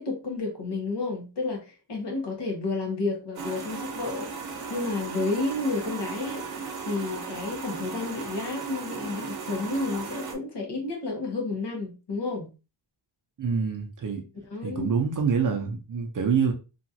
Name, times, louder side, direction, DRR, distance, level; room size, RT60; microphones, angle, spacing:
voice 1, 0.0-4.3 4.7-6.5 6.8-12.5 14.5-14.9, left 3 dB, 55° left, 1.1 m, -31 dB
sound 1, 3.3-10.3, right 5 dB, 70° right, 0.8 m, -36 dB
voice 2, 13.4-14.2 14.6-16.5, right 6 dB, 40° right, 0.6 m, -26 dB
2.9 x 2.4 x 2.7 m
wide cardioid pair, 155°, 48 cm